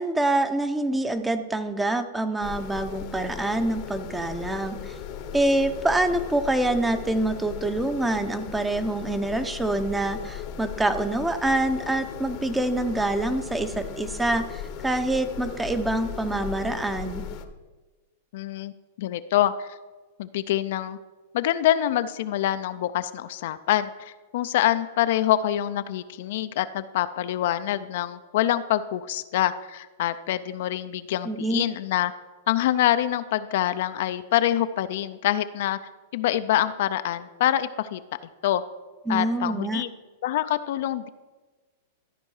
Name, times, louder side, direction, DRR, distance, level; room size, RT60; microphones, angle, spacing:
voice 1, 0.0-5.0 5.3-17.2 31.3-31.7 39.1-39.8, right 2 dB, 10° right, 10 dB, 0.7 m, -26 dB
sound 1, 2.4-17.5, left 8 dB, 45° left, 0.8 m, -37 dB
voice 2, 18.3-18.7 19.0-19.8 20.2-21.0 21.3-32.1 32.5-35.8 36.1-38.0 38.4-38.6 39.1-39.9 40.2-41.1, left 12 dB, 65° left, 12 dB, 0.4 m, -25 dB
13.5 x 4.5 x 4.8 m, 1.2 s
hypercardioid pair, 120°, 0 cm